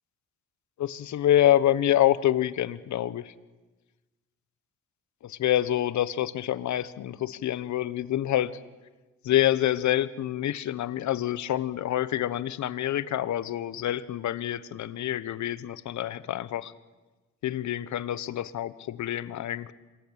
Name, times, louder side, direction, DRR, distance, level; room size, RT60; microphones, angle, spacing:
voice 1, 0.8-3.3 5.2-8.5 9.2-16.7 17.4-19.7, left 12 dB, 70° left, 16 dB, 1.2 m, -27 dB
26.5 x 21.5 x 8.9 m, 1.2 s
cardioid pair, 90°, 30 cm